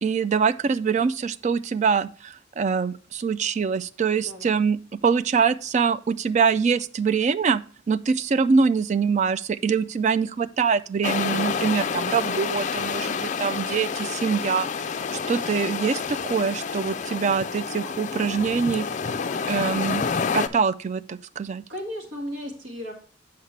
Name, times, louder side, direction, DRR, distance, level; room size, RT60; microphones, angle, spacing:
voice 1, 0.0-4.8 5.0-7.6 7.9-14.7 15.1-18.8 19.5-20.0 20.3-21.6, right 5 dB, 40° right, 15 dB, 0.3 m, -24 dB
voice 2, 4.1-4.6 21.7-22.9, equal, 80° right, 2 dB, 1.8 m, -35 dB
sound 1, 11.0-20.5, left 5 dB, 40° left, 0.4 m, -28 dB
8.0 x 5.8 x 3.2 m, 0.42 s
head